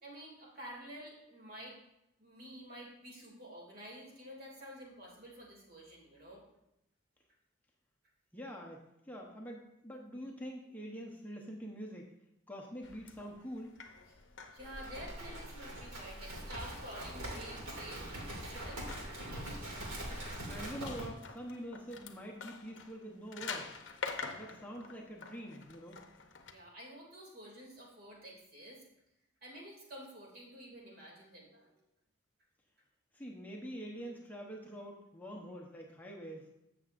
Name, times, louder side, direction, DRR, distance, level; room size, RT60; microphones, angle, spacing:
voice 1, 0.0-1.8 2.2-6.4 14.1-14.2 14.5-18.8 21.4-21.5 26.5-28.8 29.4-31.8 33.4-33.5, equal, 50° right, -3 dB, 2.5 m, -50 dB
voice 2, 8.3-12.1 12.5-13.7 20.5-23.8 24.3-26.0 33.1-36.5, equal, 10° left, -1 dB, 0.8 m, -45 dB
sound 1, 12.8-26.5, left 5 dB, 60° left, 0.7 m, -48 dB
Livestock farm animals working animals, 14.6-21.1, right 1 dB, 90° right, 2.4 m, -43 dB
14.0 x 6.7 x 2.5 m, 0.85 s
head